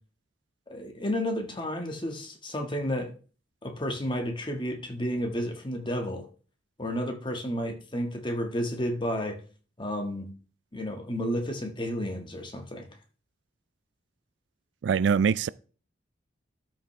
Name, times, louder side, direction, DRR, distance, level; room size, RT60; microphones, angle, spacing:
voice 1, 0.7-3.1 3.6-6.2 6.8-9.4 9.8-10.3 10.7-12.9, equal, 25° left, 1.6 m, -31 dB
voice 2, 14.8-15.5, right 6 dB, 70° right, 0.3 m, -23 dB
12.5 x 6.1 x 3.3 m
head